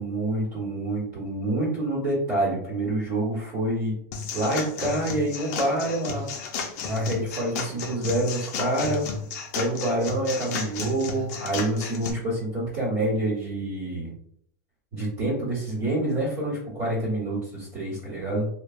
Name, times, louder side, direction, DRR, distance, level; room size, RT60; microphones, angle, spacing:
voice 1, 0.0-4.0 4.3-6.2 6.8-9.0 9.5-14.1 14.9-18.5, right 1 dB, 30° right, -7 dB, 1.2 m, -27 dB
sound 1, 4.1-12.1, left 5 dB, 55° left, 0.5 m, -33 dB
3.2 x 2.2 x 2.4 m, 0.68 s
supercardioid pair, 170°, 11 cm